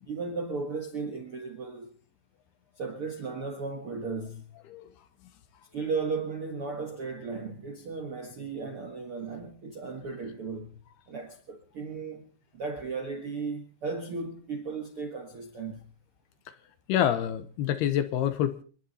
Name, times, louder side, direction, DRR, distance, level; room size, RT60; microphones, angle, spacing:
voice 1, 0.1-1.9 2.8-4.5 5.7-10.7 11.1-12.3 12.5-15.8, right 4 dB, 60° right, 1.4 m, -35 dB
voice 2, 16.9-18.6, left 10 dB, 70° left, 2.7 m, -27 dB
29.5 x 11.0 x 4.2 m
omnidirectional pair, 5.2 m